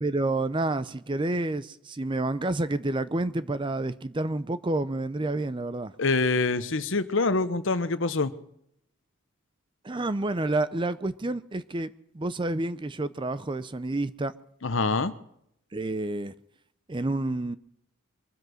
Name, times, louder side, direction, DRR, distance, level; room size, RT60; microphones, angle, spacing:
voice 1, 0.0-5.9 9.8-14.3 15.7-16.3 16.9-17.6, right 2 dB, 20° right, 0.5 m, -29 dB
voice 2, 6.0-8.3 14.6-15.1, left 3 dB, 60° left, 0.9 m, -25 dB
23.5 x 7.9 x 6.3 m
head